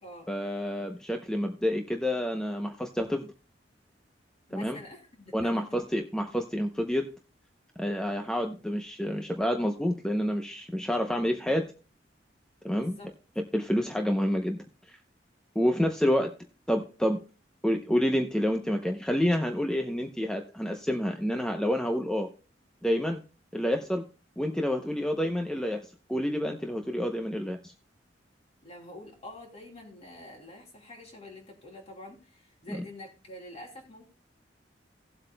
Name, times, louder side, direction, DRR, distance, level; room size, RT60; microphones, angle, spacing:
voice 1, 0.3-3.3 4.5-4.8 5.3-7.1 7.8-11.7 12.6-13.0 13.5-14.6 15.6-16.3 16.7-17.2 17.6-22.3 22.8-23.2 23.5-24.0 24.4-27.7 32.7-32.8, equal, 5° left, 4 dB, 0.7 m, -28 dB
voice 2, 4.5-5.7 12.7-13.1 28.6-34.1, left 1 dB, 35° left, 2 dB, 2.9 m, -47 dB
17.5 x 7.9 x 2.2 m, 0.35 s
head